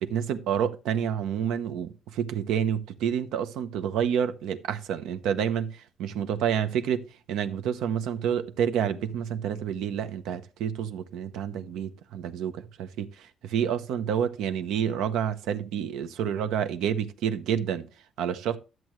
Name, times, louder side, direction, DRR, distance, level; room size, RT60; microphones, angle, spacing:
voice 1, 0.0-17.9 18.2-18.6, right 8 dB, 90° right, 0.8 m, -29 dB
12.5 x 7.7 x 3.1 m
cardioid pair, 180°, 0 cm